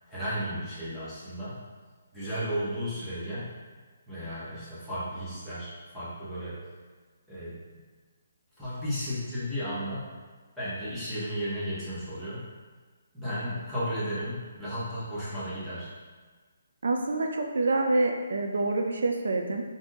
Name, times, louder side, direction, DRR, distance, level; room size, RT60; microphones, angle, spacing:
voice 1, 0.1-1.6 2.1-3.5 4.1-6.6 7.3-7.8 8.6-10.1 10.6-12.5 13.1-15.9, equal, ahead, -14 dB, 0.9 m, -34 dB
voice 2, 16.8-19.6, right 2 dB, 75° right, 3 dB, 0.3 m, -26 dB
2.7 x 2.5 x 3.7 m, 1.4 s
hypercardioid pair, 170°, 0 cm